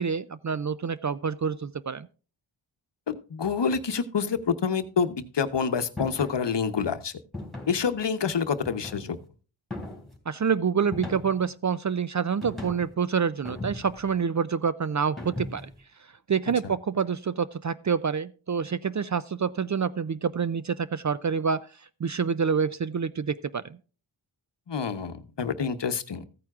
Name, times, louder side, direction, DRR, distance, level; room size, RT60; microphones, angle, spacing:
voice 1, 0.0-2.1 10.3-15.7 16.3-21.7 22.0-23.8, right 6 dB, 40° right, 0.4 m, -27 dB
voice 2, 3.1-7.1 7.7-9.2 24.7-26.3, left 6 dB, 55° left, 0.9 m, -27 dB
sound 1, 6.0-6.4 7.3-7.8 8.7-9.2 9.7-10.2 10.9-11.5 12.4-12.9 13.4-14.1 15.2-15.8, left 2 dB, ahead, 3.3 m, -38 dB
15.0 x 9.0 x 2.4 m
cardioid pair, 55°, 50 cm